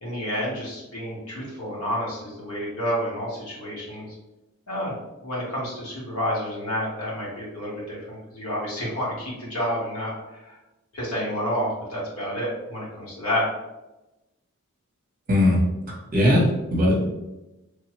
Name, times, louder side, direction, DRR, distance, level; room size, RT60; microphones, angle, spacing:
voice 1, 0.0-4.1 4.7-4.9 5.2-10.5 10.9-13.4, equal, 80° left, -5 dB, 1.3 m, -29 dB
voice 2, 15.3-15.6 16.1-17.0, left 1 dB, 40° right, -2 dB, 0.8 m, -19 dB
3.2 x 2.0 x 2.9 m, 0.99 s
head